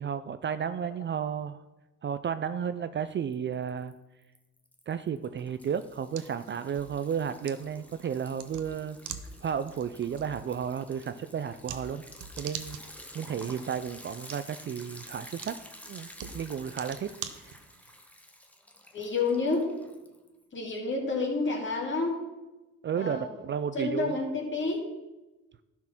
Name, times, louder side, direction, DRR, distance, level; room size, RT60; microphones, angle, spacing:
voice 1, 0.0-1.6 2.0-3.9 4.9-9.0 9.4-12.0 12.4-12.8 13.1-15.6 15.9-17.1 22.8-24.1, right 7 dB, 40° right, 12 dB, 0.4 m, -33 dB
Liquid, 3.3-3.9 4.2-20.4, left 1 dB, 5° left, 1.1 m, -50 dB
sound 1, 5.6-18.0, right 8 dB, 80° right, 0.8 m, -46 dB
voice 2, 18.9-19.7 20.5-22.2 22.9-23.4 23.7-24.9, left 3 dB, 40° left, 0 dB, 2.5 m, -29 dB
12.0 x 4.5 x 5.9 m, 1.1 s
cardioid pair, 90°, 30 cm